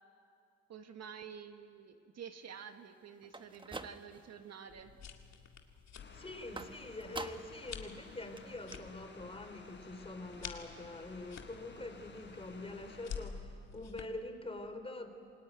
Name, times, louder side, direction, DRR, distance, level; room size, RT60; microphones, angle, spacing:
voice 1, 0.7-4.9 6.5-6.7, right 7 dB, 60° right, 7 dB, 1.6 m, -49 dB
sound 1, 3.2-4.4 4.8-5.3 6.6-7.7 8.0-8.1 8.4-8.5 8.7-8.8, right 2 dB, 15° right, 1.1 m, -46 dB
sound 2, 4.7-14.0, left 7 dB, 60° left, 2.2 m, -50 dB
sound 3, 5.9-13.3, left 4 dB, 40° left, 4.4 m, -56 dB
voice 2, 6.1-15.1, left 2 dB, 20° left, 7 dB, 3.2 m, -45 dB
28.0 x 19.5 x 9.3 m, 2.5 s
cardioid pair, 90°, 30 cm